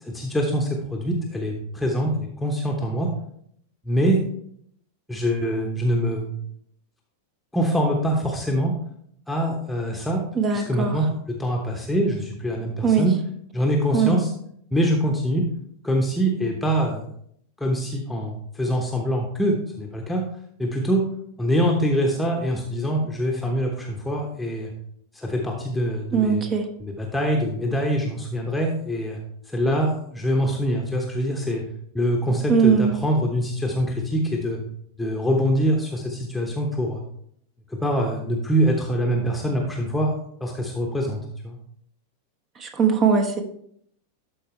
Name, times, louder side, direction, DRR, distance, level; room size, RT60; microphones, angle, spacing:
voice 1, 0.0-3.1 3.8-4.2 5.1-6.4 7.5-8.7 9.3-10.2 10.5-13.1 13.5-14.3 14.7-15.4 15.8-17.0 17.6-20.2 20.6-21.0 21.4-24.7 25.1-26.4 26.8-29.2 29.5-31.6 31.9-34.6 35.0-37.0 37.7-40.1 40.4-41.6, equal, 5° left, 0 dB, 1.0 m, -24 dB
voice 2, 10.3-11.0 12.8-13.1 13.9-14.2 26.1-26.7 32.5-32.9 42.6-43.4, right 6 dB, 30° right, 6 dB, 1.0 m, -20 dB
12.5 x 4.4 x 3.2 m, 0.68 s
figure-of-eight pair, 90°, 0 cm